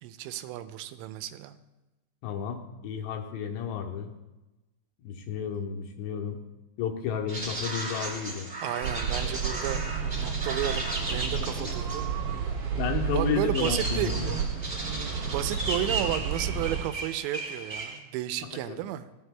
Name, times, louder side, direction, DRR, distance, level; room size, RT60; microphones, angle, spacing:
voice 1, 0.0-1.6 8.6-12.1 13.1-14.1 15.0-19.1, right 12 dB, 85° right, 11 dB, 2.8 m, -33 dB
voice 2, 2.2-4.1 5.0-6.4 6.8-8.5 11.2-11.7 12.7-14.3 18.5-18.8, left 7 dB, 80° left, 2 dB, 2.8 m, -32 dB
sound 1, 7.3-18.0, right 2 dB, 40° right, 0.7 m, -36 dB
sound 2, 8.8-16.8, right 6 dB, 55° right, 2.1 m, -31 dB
16.0 x 7.9 x 2.2 m, 1.0 s
omnidirectional pair, 5.2 m